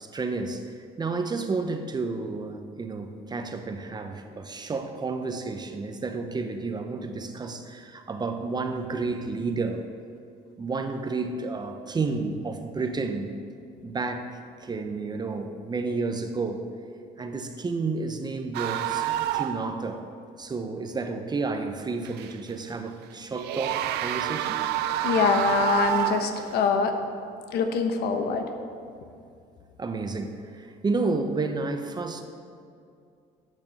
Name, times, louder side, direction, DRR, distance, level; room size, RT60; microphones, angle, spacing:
voice 1, 0.0-9.8 10.6-13.3 13.8-14.3 14.6-16.6 17.2-20.0 20.4-24.6 29.8-32.2, right 3 dB, 25° right, 6 dB, 0.8 m, -31 dB
sound 1, 18.5-19.7 20.0-20.1 22.1-22.5 23.3-26.7, right 12 dB, 80° right, 0.5 m, -28 dB
voice 2, 25.0-26.9 27.5-28.5, left 5 dB, 75° left, 6 dB, 1.0 m, -24 dB
8.4 x 6.9 x 6.5 m, 2.5 s
cardioid pair, 110°, 17 cm